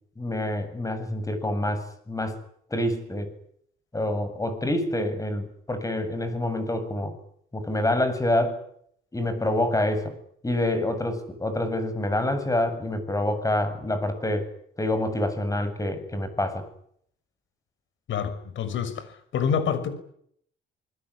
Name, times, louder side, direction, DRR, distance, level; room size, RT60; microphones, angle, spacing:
voice 1, 0.2-2.4 2.7-3.3 3.9-7.1 7.5-8.6 9.1-10.1 10.4-14.5 14.8-16.7, left 1 dB, 15° left, 10 dB, 7.9 m, -27 dB
voice 2, 18.1-19.1 19.3-19.9, left 7 dB, 75° left, 12 dB, 6.2 m, -27 dB
27.5 x 21.0 x 10.0 m, 0.68 s
cardioid pair, 90°, 20 cm